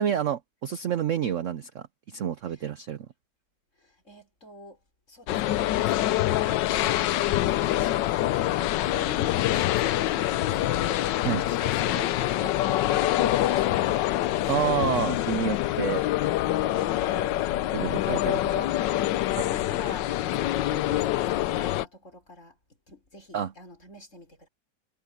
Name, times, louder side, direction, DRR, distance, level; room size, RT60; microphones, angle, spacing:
voice 1, 0.0-3.1 11.2-11.4 14.5-16.0 17.7-18.6 19.4-19.5 23.3-23.5, right 9 dB, 60° right, 0.8 m, -29 dB
voice 2, 3.8-4.8 5.1-14.5 16.2-17.4 18.1-18.3 19.4-22.6 22.9-24.5, left 3 dB, 40° left, 6.1 m, -44 dB
sound 1, 5.3-21.8, left 14 dB, 80° left, 1.3 m, -25 dB
omnidirectional pair, 2.0 m